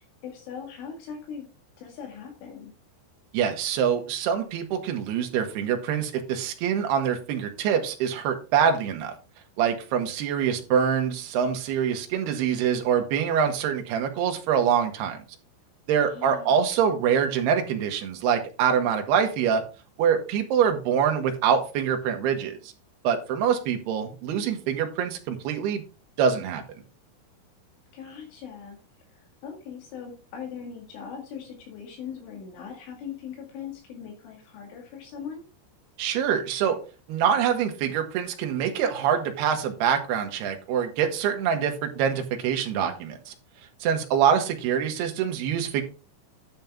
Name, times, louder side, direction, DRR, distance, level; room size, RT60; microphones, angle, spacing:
voice 1, 0.0-1.5 1.8-2.7 16.0-16.7 27.9-28.8 29.1-35.5, left 7 dB, 70° left, 2 dB, 4.4 m, -40 dB
voice 2, 3.3-9.1 9.6-15.2 15.9-19.6 20.0-22.7 23.0-25.8 26.2-26.6 36.0-36.8 37.1-43.3 43.8-45.8, right 8 dB, 65° right, 4 dB, 3.0 m, -25 dB
10.5 x 7.5 x 3.6 m, 0.33 s
omnidirectional pair, 5.8 m